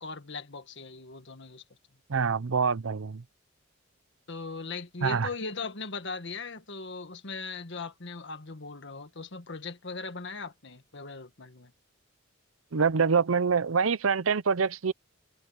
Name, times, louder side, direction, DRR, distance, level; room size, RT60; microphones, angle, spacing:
voice 1, 0.0-1.6 4.3-11.7, left 4 dB, 60° left, 1.7 m, -39 dB
voice 2, 2.1-3.2 5.0-5.3 12.7-14.9, right 5 dB, 80° right, 0.7 m, -25 dB
head